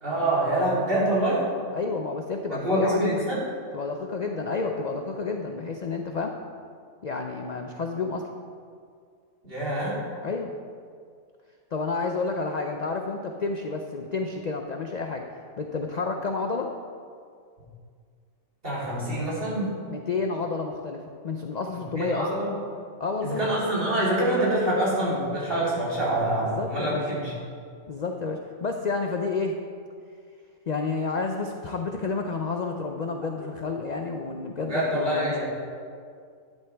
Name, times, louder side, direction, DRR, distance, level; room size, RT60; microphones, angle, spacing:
voice 1, 0.0-1.4 2.5-3.4 9.4-10.0 18.6-19.7 21.7-22.6 23.2-27.3 34.7-35.4, right 1 dB, 45° right, -8 dB, 3.7 m, -26 dB
voice 2, 1.7-3.1 3.7-6.3 7.0-8.3 10.2-10.5 11.7-15.2 15.6-16.7 19.9-22.4 23.0-23.4 26.4-27.0 27.9-29.6 30.7-35.4, left 4 dB, 45° left, 3 dB, 0.5 m, -30 dB
11.5 x 11.0 x 3.5 m, 2.2 s
omnidirectional pair, 1.4 m